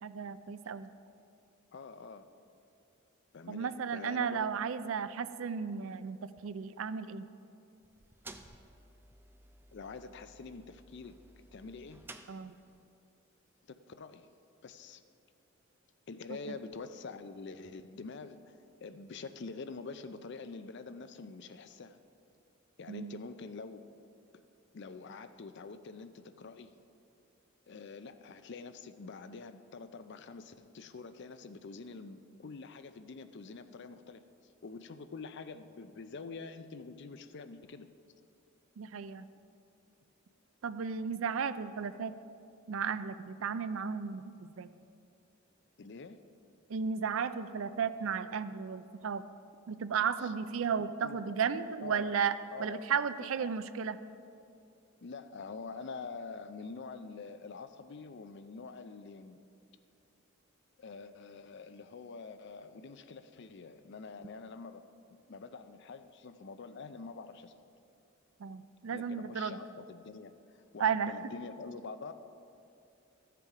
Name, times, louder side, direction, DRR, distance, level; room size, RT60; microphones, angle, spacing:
voice 1, 0.0-0.9 3.5-6.2 6.4-7.3 12.3-12.6 16.3-16.4 22.9-23.2 38.8-39.3 40.6-42.1 42.7-44.7 46.7-49.2 49.7-54.0 68.4-69.6 70.8-71.2, right 6 dB, 75° right, 13 dB, 0.4 m, -34 dB
voice 2, 1.7-2.3 3.3-4.6 9.7-11.1 11.5-12.0 13.7-14.3 14.6-15.0 16.1-18.5 18.8-22.0 22.8-23.8 24.7-26.7 27.7-34.2 34.6-37.9 45.8-46.2 50.2-50.3 51.0-52.1 52.5-53.5 55.0-59.4 60.8-67.5 68.9-72.1, left 4 dB, 55° left, 10 dB, 0.5 m, -46 dB
sound 1, 7.8-12.9, right 2 dB, 10° right, 0.4 m, -54 dB
13.5 x 6.8 x 4.8 m, 2.6 s
head